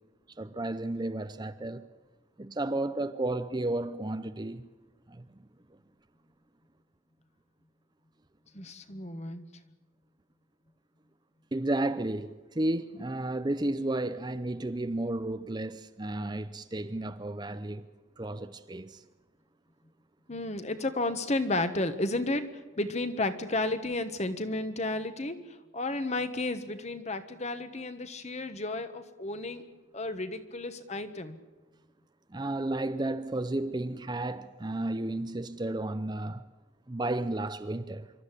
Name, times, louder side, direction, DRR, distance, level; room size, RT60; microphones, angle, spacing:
voice 1, 0.4-1.9 2.4-4.7 5.1-5.3 11.5-17.9 18.2-19.0 32.3-36.5 36.9-38.1, right 2 dB, 20° right, 0.6 m, -32 dB
voice 2, 8.5-9.4 20.3-22.5 22.8-29.6 29.9-31.4, left 2 dB, 35° left, 1.4 m, -32 dB
26.5 x 13.0 x 9.9 m
head